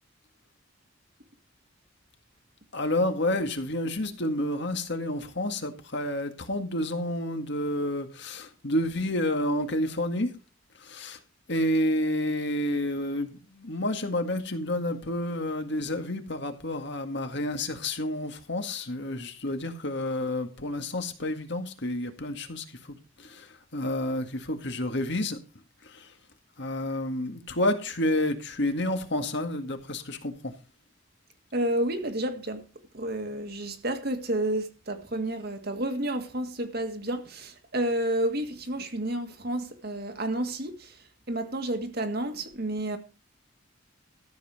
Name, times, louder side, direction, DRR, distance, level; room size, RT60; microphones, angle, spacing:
voice 1, 2.7-10.3 10.7-11.2 11.5-25.4 25.8-26.2 26.6-30.6, left 1 dB, 60° left, 1.9 m, -30 dB
voice 2, 31.5-32.7 32.9-43.0, right 1 dB, 50° right, 1.9 m, -30 dB
14.0 x 7.7 x 5.0 m
head